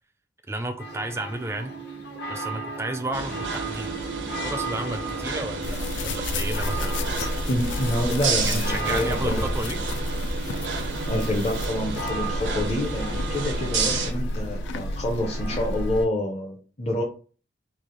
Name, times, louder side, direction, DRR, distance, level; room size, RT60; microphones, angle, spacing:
voice 1, 0.5-1.8 2.3-3.9 4.4-7.0 8.4-9.8, right 2 dB, 15° right, 7 dB, 0.4 m, -32 dB
sound 1, 0.8-16.1, right 2 dB, 65° left, 0.9 m, -37 dB
sound 2, 3.1-14.1, right 4 dB, 90° right, 0.7 m, -31 dB
sound 3, 5.6-16.1, left 1 dB, 90° left, 0.4 m, -30 dB
voice 2, 7.5-9.5 11.1-17.0, left 1 dB, 35° left, -1 dB, 0.6 m, -28 dB
3.2 x 2.4 x 3.7 m, 0.38 s
head